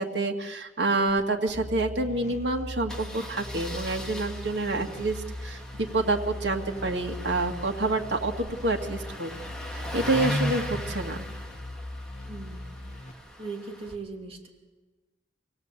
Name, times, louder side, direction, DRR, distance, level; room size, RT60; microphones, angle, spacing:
voice 1, 0.0-9.3 9.7-11.2, right 2 dB, 80° right, 2 dB, 2.3 m, -28 dB
Engine starting, 1.0-1.2 1.5-1.6 1.8-2.0 2.9-14.0, equal, 5° left, 2.6 m, -38 dB
sound 1, 1.5-13.1, left 1 dB, 45° left, 1.6 m, -39 dB
voice 2, 12.2-12.8 13.4-14.5, right 3 dB, 35° right, 1 dB, 2.9 m, -39 dB
26.5 x 18.0 x 8.4 m, 1.3 s
head